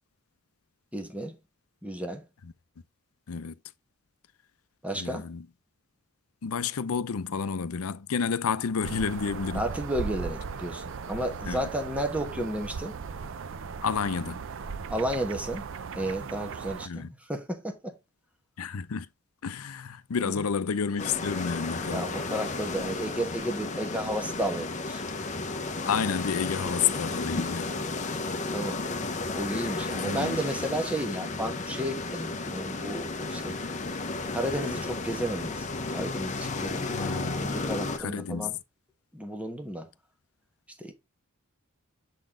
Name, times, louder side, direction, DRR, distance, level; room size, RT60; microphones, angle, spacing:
voice 1, 0.9-1.4 1.8-2.3 4.8-5.3 9.5-12.9 14.9-15.7 15.9-18.0 20.2-20.4 21.9-25.1 28.4-28.8 29.3-33.6 34.3-35.6 35.9-38.6 39.1-39.9 40.8-40.9, right 1 dB, 5° right, 1.2 m, -33 dB
voice 2, 4.9-5.5 6.4-9.7 11.5-11.7 13.8-14.4 16.9-17.1 18.6-19.1 19.4-22.1 25.8-27.8 29.9-30.4 36.9-37.4 38.0-38.5, left 6 dB, 90° left, 0.5 m, -30 dB
sound 1, 8.8-16.9, right 5 dB, 65° right, 0.5 m, -37 dB
sound 2, 21.0-38.0, left 3 dB, 35° left, 0.8 m, -33 dB
7.4 x 4.1 x 3.7 m
head